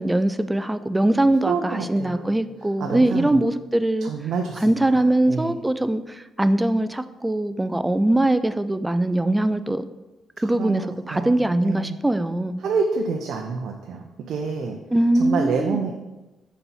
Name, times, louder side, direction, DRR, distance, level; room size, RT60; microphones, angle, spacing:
voice 1, 0.0-4.1 4.6-9.8 10.4-12.6 14.9-15.8, right 1 dB, 10° right, 12 dB, 0.3 m, -22 dB
voice 2, 1.5-2.3 2.8-3.4 4.0-5.5 10.6-10.8 11.1-12.0 12.6-14.8 15.2-15.9, right 5 dB, 70° right, 3 dB, 0.5 m, -28 dB
4.2 x 4.1 x 5.5 m, 1.1 s
cardioid pair, 90°, 0 cm